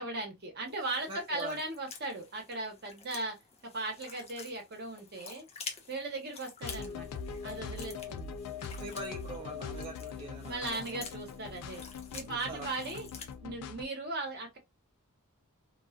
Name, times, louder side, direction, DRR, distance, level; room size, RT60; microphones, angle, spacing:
voice 1, 0.0-3.4 3.6-5.5 5.9-8.3 10.4-11.8 12.1-13.1 13.4-14.6, right 2 dB, 45° right, 0.9 m, -38 dB
sound 1, 0.7-13.3, left 5 dB, 30° left, 0.5 m, -49 dB
voice 2, 1.0-1.6 8.1-8.2 8.8-11.0 12.3-12.8, right 3 dB, 25° right, 0.3 m, -43 dB
sound 2, 6.6-13.9, left 6 dB, 85° left, 0.3 m, -42 dB
2.4 x 2.3 x 2.3 m
head